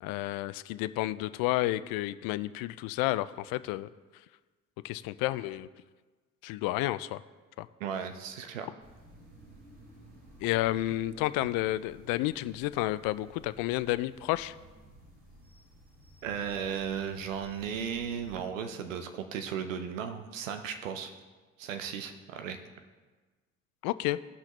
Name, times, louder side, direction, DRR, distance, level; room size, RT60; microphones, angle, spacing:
voice 1, 0.0-3.9 4.8-5.7 6.4-7.2 7.6-7.7 10.4-14.5 23.8-24.2, left 16 dB, 65° left, 16 dB, 0.5 m, -31 dB
voice 2, 7.8-8.7 16.2-21.1 21.6-22.6, right 7 dB, 85° right, 7 dB, 0.7 m, -35 dB
sound 1, 8.8-18.4, equal, 70° right, 3.1 m, -55 dB
16.5 x 5.6 x 3.0 m, 1.3 s
hypercardioid pair, 50°, 38 cm